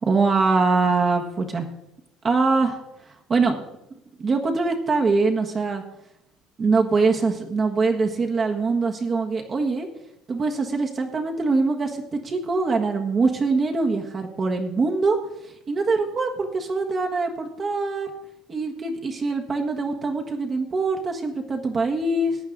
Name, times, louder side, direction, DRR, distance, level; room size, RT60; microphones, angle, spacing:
voice 1, 0.0-1.6 2.2-2.8 3.3-3.6 4.2-5.8 6.6-9.9 10.3-15.2 15.7-18.1 18.5-22.4, right 3 dB, 35° right, 2 dB, 1.3 m, -23 dB
14.5 x 8.8 x 3.9 m, 0.84 s
supercardioid pair, 90°, 0 cm